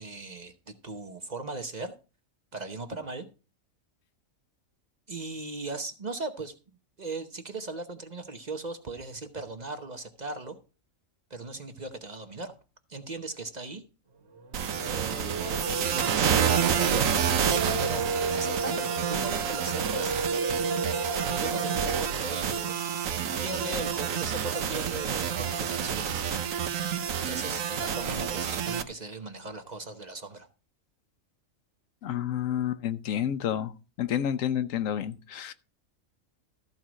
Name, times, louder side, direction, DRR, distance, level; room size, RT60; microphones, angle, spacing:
voice 1, 0.0-1.9 2.5-3.3 5.1-6.5 7.0-10.6 11.3-12.6 12.9-13.8 14.8-15.5 15.9-17.1 17.8-20.9 21.3-22.8 23.3-26.2 27.2-30.5, right 3 dB, 35° right, 0.9 m, -38 dB
sound 1, 14.3-22.0, right 4 dB, 55° right, 1.4 m, -33 dB
sound 2, 14.5-28.8, right 8 dB, 90° right, 1.3 m, -29 dB
voice 2, 32.0-33.7 34.0-35.5, left 10 dB, 80° left, 1.1 m, -29 dB
13.5 x 4.6 x 6.2 m
omnidirectional pair, 1.4 m